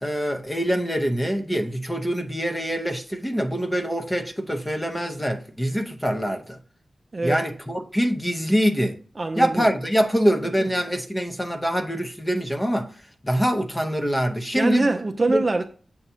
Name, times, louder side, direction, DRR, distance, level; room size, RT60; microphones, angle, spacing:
voice 1, 0.0-6.6 7.2-9.0 9.4-12.9 13.2-14.9 15.3-15.5, equal, 10° left, 0.7 m, -24 dB
voice 2, 7.1-7.4 9.2-9.7 10.6-10.7 14.5-15.6, right 2 dB, 30° right, 0.4 m, -23 dB
7.1 x 2.7 x 5.5 m
wide cardioid pair, 145°, 0 cm